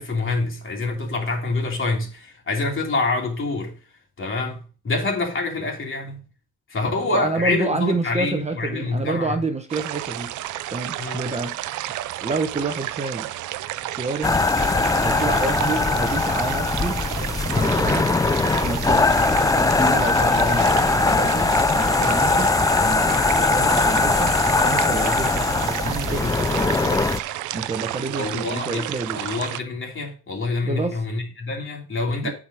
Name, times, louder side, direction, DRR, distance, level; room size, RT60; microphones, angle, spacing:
voice 1, 0.0-3.7 4.2-6.2 6.7-9.4 11.0-11.3 28.1-28.9 29.1-32.3, left 3 dB, 40° left, 2.9 m, -26 dB
voice 2, 6.8-10.3 10.7-11.5 12.2-13.3 13.8-14.3 14.8-17.0 17.5-18.1 18.6-19.1 19.5-24.4 24.6-27.0 27.5-29.2 30.6-31.0 32.2-32.3, right 3 dB, 20° right, 1.0 m, -29 dB
sound 1, 9.7-29.6, right 14 dB, 80° right, 0.5 m, -31 dB
sound 2, 14.2-27.2, left 3 dB, 10° left, 0.3 m, -20 dB
8.8 x 5.2 x 4.9 m
cardioid pair, 90°, 30 cm